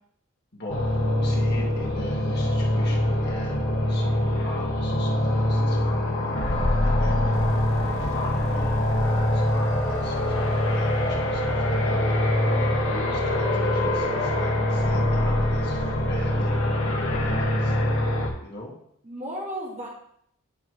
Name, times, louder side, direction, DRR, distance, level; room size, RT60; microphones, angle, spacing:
sound 1, 0.7-18.3, left 1 dB, 65° left, 1.5 m, -24 dB
voice 1, 1.2-3.6 3.9-6.4 6.8-7.5 7.8-12.0 12.6-17.7 18.4-18.7, left 1 dB, 50° left, -3 dB, 1.9 m, -40 dB
voice 2, 12.4-13.3 19.0-19.9, right 1 dB, 35° right, -4 dB, 1.8 m, -36 dB
11.0 x 4.1 x 3.2 m, 0.70 s
head